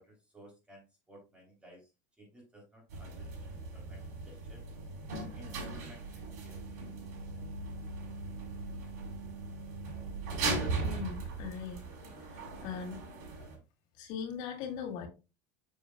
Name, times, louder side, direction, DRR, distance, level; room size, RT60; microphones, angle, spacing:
voice 1, 0.0-1.9 2.2-4.0 4.3-4.6 5.3-6.6, right 1 dB, 10° right, 3.5 m, -57 dB
sound 1, 2.9-13.6, right 3 dB, 80° right, 4.3 m, -39 dB
voice 2, 10.8-11.8 12.6-13.0 14.0-15.1, left 7 dB, 60° left, 2.4 m, -39 dB
7.0 x 6.9 x 2.4 m
supercardioid pair, 130°, 9 cm